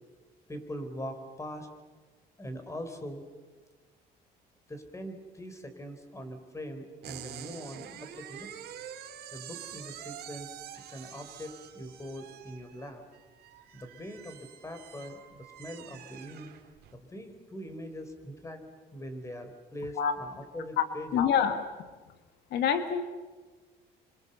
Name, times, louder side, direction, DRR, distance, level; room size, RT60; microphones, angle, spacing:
voice 1, 0.5-1.7 2.4-3.2 4.7-8.5 9.3-10.5 10.9-13.0 13.7-16.5 16.9-18.6 18.9-21.3, equal, 15° left, 8 dB, 4.1 m, -42 dB
sound 1, 7.0-17.0, right 10 dB, 70° right, 2.9 m, -46 dB
voice 2, 21.1-21.6 22.5-23.0, left 8 dB, 80° left, 9 dB, 1.6 m, -25 dB
27.5 x 25.5 x 6.9 m, 1.3 s
cardioid pair, 110°, 17 cm